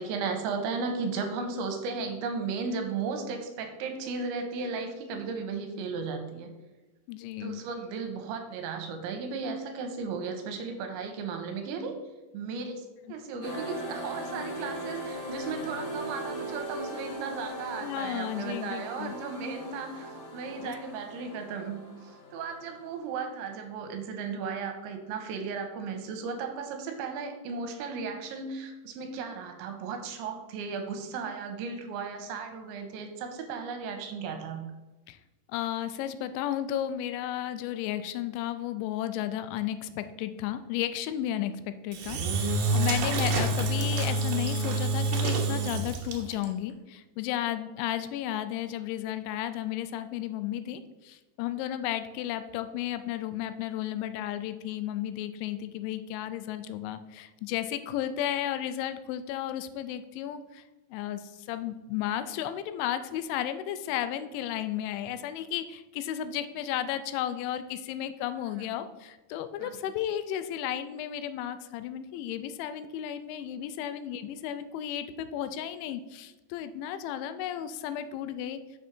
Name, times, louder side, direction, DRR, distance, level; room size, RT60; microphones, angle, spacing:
voice 1, 0.0-6.5 7.4-12.0 12.3-34.6 69.6-69.7, right 5 dB, 85° right, 5 dB, 3.1 m, -35 dB
voice 2, 7.1-7.6 17.8-19.1 20.6-20.7 35.1-35.2 35.5-60.6 60.9-78.6, left 11 dB, 85° left, 11 dB, 2.9 m, -33 dB
sound 1, 13.4-23.7, equal, 55° left, 2.1 m, -39 dB
Engine / Drill, 41.9-46.5, right 2 dB, 65° right, 2.7 m, -27 dB
6.9 x 6.1 x 4.3 m, 1.1 s
omnidirectional pair, 5.3 m